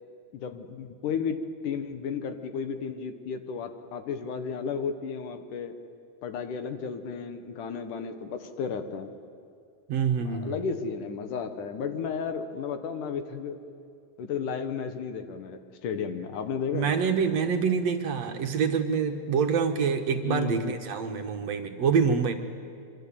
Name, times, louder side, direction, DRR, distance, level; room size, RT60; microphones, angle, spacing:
voice 1, 0.3-5.7 6.2-9.1 10.3-13.6 14.2-16.9 20.2-20.7, left 6 dB, 70° left, 8 dB, 2.9 m, -33 dB
voice 2, 9.9-10.6 16.7-22.4, right 6 dB, 60° right, 6 dB, 2.2 m, -26 dB
26.0 x 24.5 x 8.7 m, 2.5 s
omnidirectional pair, 3.9 m